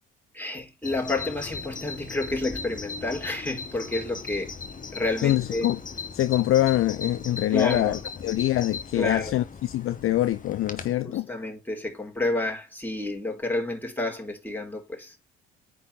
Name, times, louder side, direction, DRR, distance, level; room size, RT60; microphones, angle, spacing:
voice 1, 0.3-4.6 4.9-5.7 7.5-8.0 8.9-9.3 11.0-15.2, left 2 dB, 5° left, 4.3 m, -30 dB
Bird vocalization bird call bird song, 0.8-11.0, left 5 dB, 25° left, 1.7 m, -38 dB
voice 2, 5.2-5.8 6.1-11.3, left 14 dB, 45° left, 0.6 m, -24 dB
9.6 x 4.0 x 6.7 m
figure-of-eight pair, 50°, 31 cm